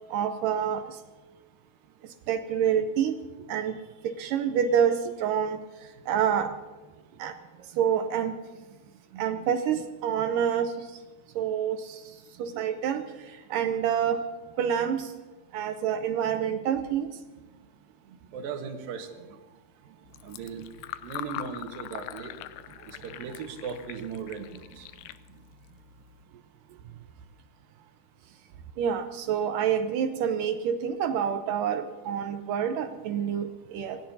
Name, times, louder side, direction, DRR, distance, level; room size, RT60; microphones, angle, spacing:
voice 1, 0.1-1.0 2.3-3.2 3.5-3.8 4.0-5.6 6.1-6.5 7.2-7.4 7.7-8.3 9.1-10.9 11.4-14.2 14.6-15.1 15.5-17.1 23.2-23.3 28.8-34.0, right 8 dB, 85° right, 8 dB, 1.9 m, -27 dB
voice 2, 18.3-19.4 20.2-20.6 21.0-22.3 22.9-24.5 24.8-24.9, right 6 dB, 65° right, 3 dB, 2.9 m, -37 dB
Fill (with liquid), 20.1-26.2, left 15 dB, 80° left, 2.5 m, -43 dB
26.0 x 18.5 x 2.8 m, 1.2 s
omnidirectional pair, 4.8 m